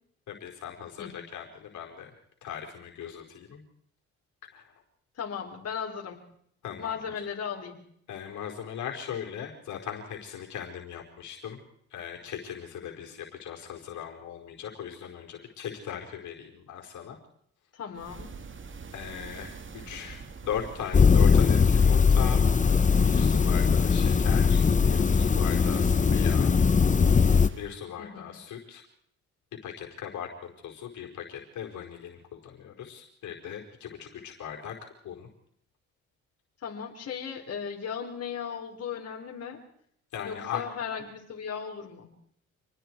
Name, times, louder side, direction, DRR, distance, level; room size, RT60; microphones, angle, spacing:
voice 1, 0.3-2.1 2.4-3.6 4.5-4.7 6.6-7.0 8.1-11.6 11.9-17.2 18.9-19.6 19.9-22.4 22.9-26.5 27.5-28.8 29.6-35.3 40.1-40.6, left 9 dB, 75° left, 1 dB, 4.6 m, -39 dB
voice 2, 5.2-6.2 6.8-7.8 17.7-18.4 28.0-28.4 36.6-39.6 40.2-42.1, left 7 dB, 55° left, 1 dB, 4.7 m, -36 dB
sound 1, 18.0-27.8, right 5 dB, 40° right, 2.1 m, -44 dB
sound 2, 20.9-27.5, left 5 dB, 25° left, 0.8 m, -20 dB
27.5 x 20.0 x 4.7 m, 0.67 s
cardioid pair, 90°, 30 cm